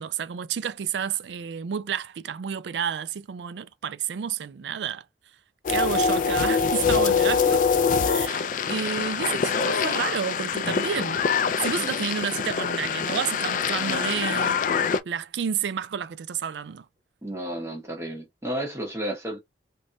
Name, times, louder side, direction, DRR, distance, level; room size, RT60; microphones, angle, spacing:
voice 1, 0.0-5.0 5.7-7.6 8.0-11.2 11.6-14.7 15.1-16.8, right 7 dB, 85° right, 0.4 m, -30 dB
sound 1, 5.7-15.0, left 6 dB, 45° left, 0.3 m, -24 dB
voice 2, 17.2-19.4, right 1 dB, 15° right, 1.1 m, -32 dB
3.4 x 2.7 x 2.3 m
head